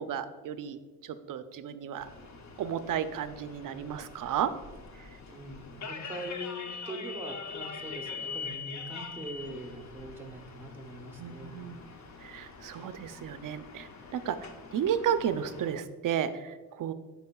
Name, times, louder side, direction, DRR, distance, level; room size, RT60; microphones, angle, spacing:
voice 1, 0.0-2.1 2.6-4.5 11.2-11.8 12.2-14.4 14.7-16.9, right 9 dB, 60° right, 11 dB, 0.5 m, -33 dB
sound 1, 2.0-15.7, left 5 dB, 50° left, 0.6 m, -44 dB
voice 2, 5.3-11.6 12.8-12.9, right 1 dB, 5° right, 3 dB, 0.6 m, -42 dB
11.0 x 4.3 x 2.3 m, 1.3 s
wide cardioid pair, 130°, 38 cm